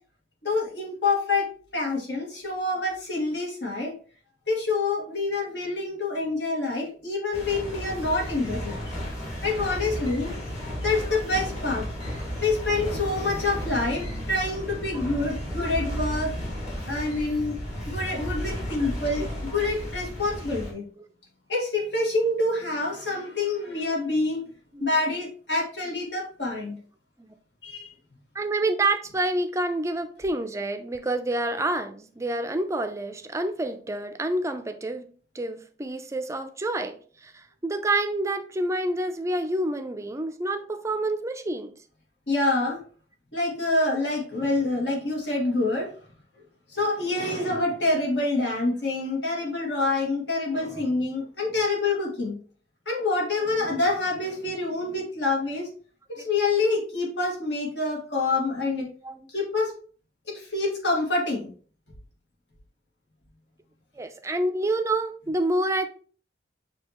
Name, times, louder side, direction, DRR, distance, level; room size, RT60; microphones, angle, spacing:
voice 1, 0.4-4.0 4.5-8.8 9.4-10.3 10.8-16.5 16.9-17.6 17.9-19.3 19.5-20.8 21.5-24.5 24.8-26.7 27.6-27.9 42.3-42.8 43.3-45.9 46.7-52.4 52.9-55.7 56.2-58.9 59.3-59.7 60.3-61.5, left 2 dB, 75° left, 1.9 m, -27 dB
sound 1, 7.3-20.7, equal, 40° left, 1.7 m, -33 dB
voice 2, 28.3-35.1 35.3-41.7 56.2-56.3 59.0-59.3 64.0-65.9, right 2 dB, 15° right, 0.4 m, -28 dB
6.4 x 2.8 x 2.9 m
head